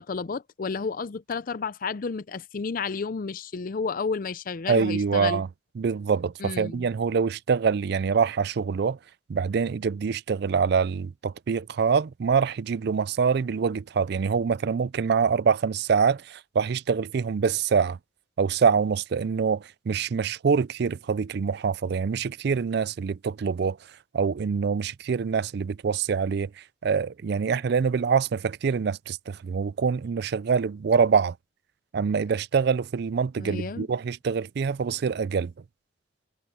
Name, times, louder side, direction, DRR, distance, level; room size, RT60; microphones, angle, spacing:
voice 1, 0.0-5.4 6.4-6.9 33.4-33.9, left 5 dB, 45° left, 0.5 m, -31 dB
voice 2, 4.7-5.5 5.8-9.0 9.3-18.0 18.4-23.8 24.1-31.4 31.9-35.5, right 6 dB, 55° right, 0.4 m, -25 dB
head